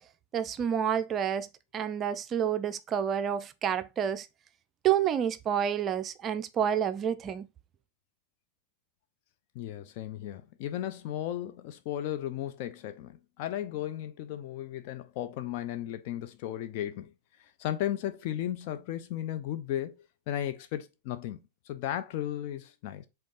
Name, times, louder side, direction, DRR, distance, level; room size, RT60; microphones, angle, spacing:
voice 1, 0.3-1.5 1.7-4.3 4.8-7.5, right 9 dB, 25° right, 0.4 m, -29 dB
voice 2, 9.5-17.1 17.4-20.0 20.3-21.4 21.7-23.1, left 12 dB, 45° left, 0.7 m, -35 dB
5.2 x 3.8 x 5.4 m
figure-of-eight pair, 90°, 0 cm